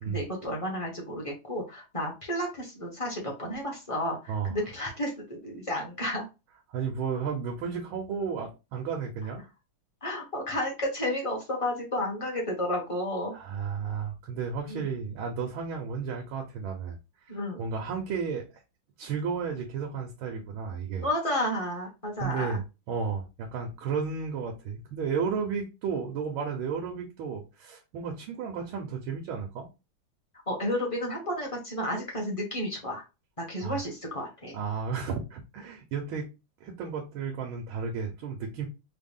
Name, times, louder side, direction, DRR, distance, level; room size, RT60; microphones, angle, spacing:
voice 1, 0.1-6.2 10.0-13.3 14.7-14.9 17.3-17.6 21.0-22.6 30.5-33.0 33.4-34.6, left 1 dB, 25° left, 0.9 m, -32 dB
voice 2, 6.7-9.5 13.3-17.0 17.6-18.5 19.0-21.1 22.2-29.7 33.6-33.8 34.5-36.3 36.6-38.7, right 6 dB, 85° right, 1.6 m, -33 dB
4.1 x 2.1 x 3.5 m
omnidirectional pair, 2.2 m